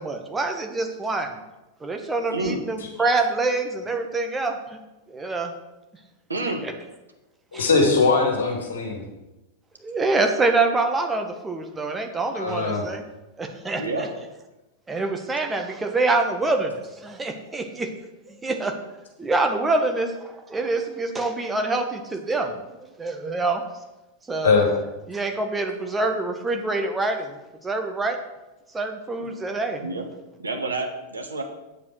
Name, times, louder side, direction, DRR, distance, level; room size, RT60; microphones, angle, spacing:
voice 1, 0.0-1.4 1.8-4.6 5.1-5.5 6.6-6.7 7.5-7.7 9.8-13.0 13.4-14.1 14.9-17.9 18.3-18.7 19.2-22.6 23.0-23.6 24.3-24.6 25.1-28.2 28.7-29.8, right 3 dB, 15° right, 5 dB, 1.5 m, -26 dB
voice 2, 2.3-2.6 6.3-6.6 13.8-14.1 29.2-29.3 29.8-30.0 30.4-31.4, right 2 dB, 75° right, 4 dB, 1.7 m, -29 dB
voice 3, 7.5-9.0 12.3-12.8 24.4-24.7, left 4 dB, 65° left, 1 dB, 2.3 m, -20 dB
9.1 x 7.5 x 6.3 m, 1.0 s
figure-of-eight pair, 90°, 0 cm